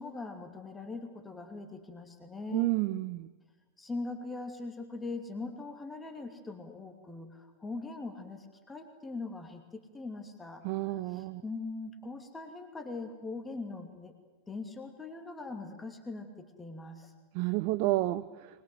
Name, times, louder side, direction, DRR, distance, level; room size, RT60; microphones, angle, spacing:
voice 1, 0.0-2.7 3.8-10.6 11.1-14.1 14.5-17.1, left 3 dB, 10° left, 5 dB, 2.7 m, -41 dB
voice 2, 2.5-3.3 10.6-11.4 17.3-18.2, right 18 dB, 45° right, 11 dB, 0.7 m, -30 dB
24.0 x 21.5 x 7.9 m, 1.2 s
figure-of-eight pair, 90°, 0 cm